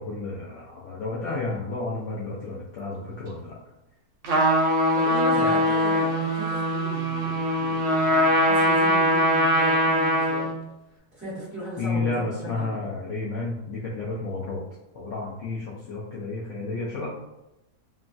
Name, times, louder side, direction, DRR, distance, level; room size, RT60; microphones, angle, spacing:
voice 1, 0.0-3.5 5.3-5.6 11.8-14.6 14.9-17.1, left 3 dB, 85° left, -5 dB, 0.6 m, -31 dB
Trumpet, 4.2-10.5, equal, 75° right, 0.7 m, -22 dB
voice 2, 4.9-10.5 11.1-12.2 12.6-12.8, equal, 10° right, -13 dB, 0.9 m, -37 dB
3.1 x 2.2 x 2.5 m, 0.92 s
omnidirectional pair, 1.8 m